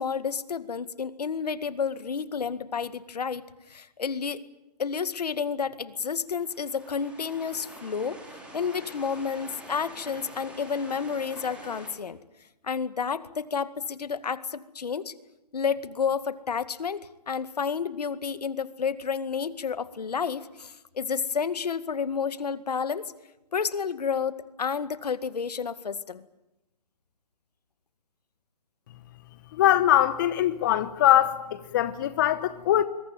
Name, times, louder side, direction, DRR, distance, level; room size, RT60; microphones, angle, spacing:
voice 1, 0.0-4.4 4.8-8.2 8.5-12.2 12.6-15.1 15.5-23.1 23.5-26.2, left 6 dB, 70° left, 12 dB, 2.1 m, -30 dB
sound 1, 6.3-11.9, right 1 dB, 5° right, 4.4 m, -46 dB
voice 2, 29.5-32.8, left 12 dB, 30° left, 12 dB, 1.0 m, -22 dB
26.0 x 22.5 x 9.1 m, 0.96 s
hypercardioid pair, 160°, 21 cm